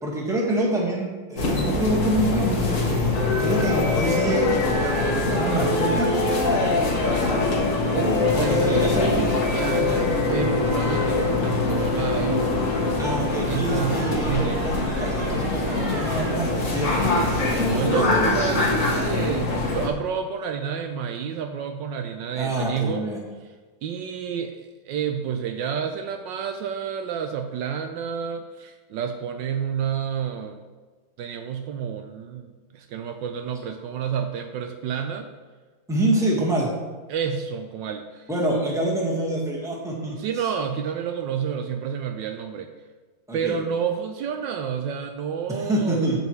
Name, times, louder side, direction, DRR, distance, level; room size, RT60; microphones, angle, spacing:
voice 1, 0.0-6.1 7.9-9.2 13.0-18.3 22.3-23.2 35.9-36.7 38.3-40.2 43.3-43.6 45.5-46.2, right 1 dB, ahead, -3 dB, 1.4 m, -26 dB
sound 1, 1.4-19.9, left 3 dB, 45° left, 1.3 m, -23 dB
voice 2, 7.9-12.5 13.5-14.6 17.7-23.1 23.8-30.6 31.2-35.3 37.1-38.3 40.2-42.7 43.3-46.1, right 7 dB, 75° right, 6 dB, 1.2 m, -30 dB
sound 2, 13.2-17.8, right 1 dB, 30° right, 1.5 m, -37 dB
15.0 x 5.3 x 3.2 m, 1.4 s
omnidirectional pair, 2.1 m